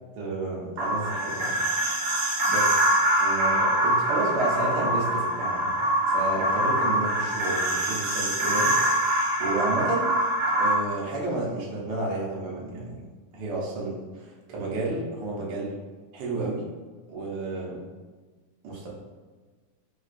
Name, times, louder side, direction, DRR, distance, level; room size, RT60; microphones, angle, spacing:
voice 1, 0.2-1.6 2.5-2.8 3.2-5.8 6.1-10.1 10.6-13.1 13.3-15.8 16.1-16.6 17.1-17.8 18.6-18.9, right 2 dB, 70° right, -4 dB, 1.2 m, -31 dB
sound 1, 0.8-10.7, right 1 dB, 85° right, 1.5 m, -24 dB
4.4 x 2.3 x 2.4 m, 1.4 s
omnidirectional pair, 2.1 m